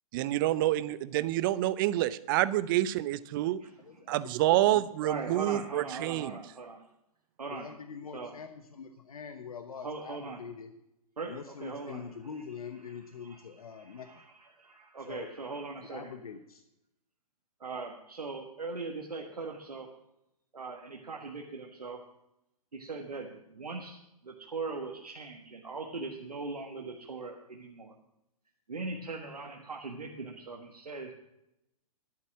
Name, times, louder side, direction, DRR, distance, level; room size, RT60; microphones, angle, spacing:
voice 1, 0.1-3.6 4.1-6.4, right 14 dB, 35° right, 17 dB, 0.5 m, -28 dB
voice 2, 3.8-4.2 4.7-4.8 7.5-10.7 11.3-14.1 15.0-15.3 15.8-16.6, left 6 dB, 70° left, 7 dB, 1.0 m, -44 dB
voice 3, 5.0-6.8 7.4-7.7 8.1-8.4 9.8-10.4 11.2-12.1 12.9-13.4 13.7-16.1 17.6-19.9 20.5-22.0 22.7-24.0 24.2-27.9 28.7-31.1, right 3 dB, 80° right, 0 dB, 1.5 m, -40 dB
11.5 x 8.4 x 6.1 m, 0.86 s
figure-of-eight pair, 120°, 19 cm